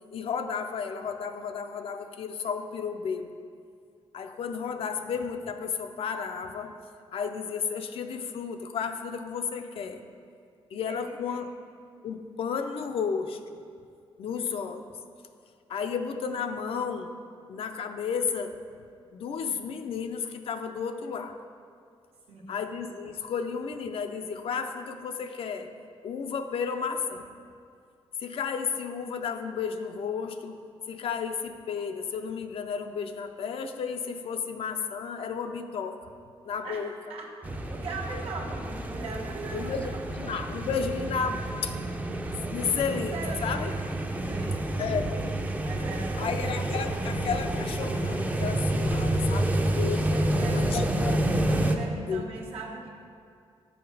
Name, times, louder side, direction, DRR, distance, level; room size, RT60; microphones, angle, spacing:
voice 1, 0.1-3.4 4.1-6.7 7.1-10.0 10.7-11.5 12.0-13.4 14.2-14.9 15.7-17.1 17.5-18.6 19.1-21.4 22.5-25.7 26.0-27.2 28.2-30.6 30.9-36.0 36.4-36.9 39.5-41.8 42.5-43.7 44.8-45.2 46.2-50.1 50.5-51.2 52.0-52.3, left 6 dB, 70° left, 7 dB, 0.5 m, -32 dB
voice 2, 10.9-11.4 22.3-22.5 36.6-36.8 37.1-37.3 37.7-40.0 42.5-42.6 43.1-43.6 44.2-44.7 45.6-46.3 50.1-50.8 51.5-52.9, right 3 dB, 75° right, -2 dB, 1.3 m, -39 dB
sound 1, 37.4-51.8, right 1 dB, 15° right, 0.5 m, -29 dB
8.3 x 5.0 x 4.7 m, 2.3 s
cardioid pair, 115°, 10 cm